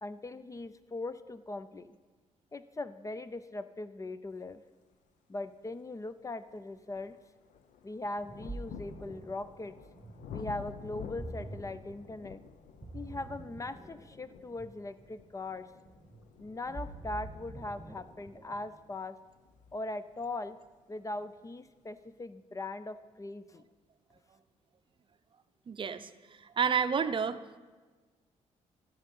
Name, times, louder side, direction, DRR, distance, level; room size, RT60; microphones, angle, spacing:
voice 1, 0.0-1.9 2.5-4.6 5.3-7.2 7.8-9.8 10.3-12.4 12.9-15.7 16.4-19.2 19.7-20.6 20.9-23.6, left 2 dB, 25° left, 13 dB, 0.5 m, -40 dB
sound 1, 5.4-5.5 6.1-20.8 21.7-21.8, left 7 dB, 75° left, 0.7 m, -51 dB
Ocean, 8.0-18.8, right 2 dB, 10° right, 1.5 m, -47 dB
voice 2, 25.7-27.4, right 6 dB, 40° right, 11 dB, 0.6 m, -30 dB
14.5 x 6.6 x 5.4 m, 1.3 s
cardioid pair, 80°, 13 cm